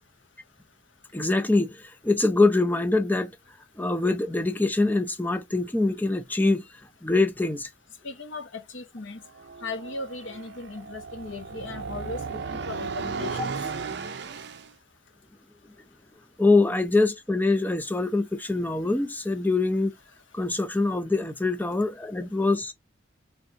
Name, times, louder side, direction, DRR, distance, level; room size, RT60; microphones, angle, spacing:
voice 1, 1.1-3.3 3.8-6.7 7.0-7.7 16.4-19.9 20.3-22.7, left 2 dB, 10° left, 0.5 m, -24 dB
voice 2, 8.0-9.2 9.6-13.5, left 3 dB, 80° left, 1.2 m, -37 dB
sound 1, 9.3-14.7, right 5 dB, 60° right, 0.6 m, -35 dB
4.2 x 3.5 x 3.6 m
head